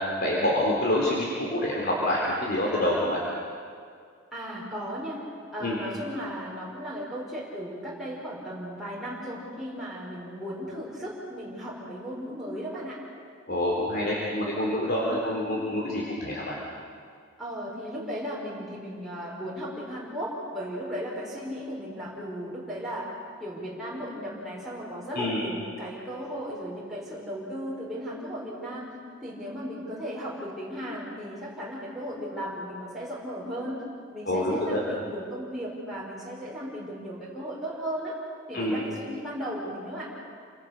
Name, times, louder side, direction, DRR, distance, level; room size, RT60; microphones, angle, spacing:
voice 1, 0.2-3.2 5.6-5.8 13.5-16.6 25.1-25.4 34.3-34.8 38.5-38.8, left 1 dB, 50° left, -3 dB, 4.0 m, -27 dB
voice 2, 4.3-5.2 5.5-13.0 15.1-15.3 17.4-23.1 23.4-33.8 34.1-38.1 38.5-40.1, equal, ahead, -7 dB, 5.2 m, -36 dB
29.5 x 26.0 x 6.7 m, 2.2 s
head